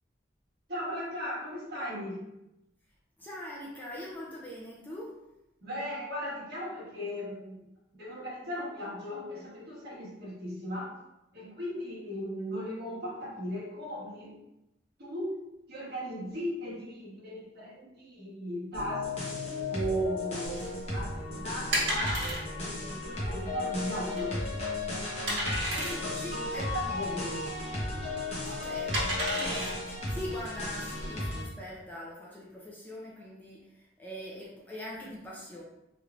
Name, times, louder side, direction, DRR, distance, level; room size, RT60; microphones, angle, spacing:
voice 1, 0.7-2.3 5.6-7.6 8.0-10.9 11.3-14.4 15.0-19.2 19.7-24.4 25.6-27.5, equal, 55° right, -7 dB, 1.4 m, -37 dB
voice 2, 3.2-5.2 26.2-26.7 28.4-29.0 29.3-35.6, left 1 dB, 10° left, -5 dB, 0.5 m, -42 dB
sound 1, 18.7-31.4, left 2 dB, 35° left, 0.9 m, -35 dB
sound 2, 20.4-31.1, right 1 dB, 80° right, 1.4 m, -35 dB
3.4 x 3.1 x 2.4 m, 0.88 s
head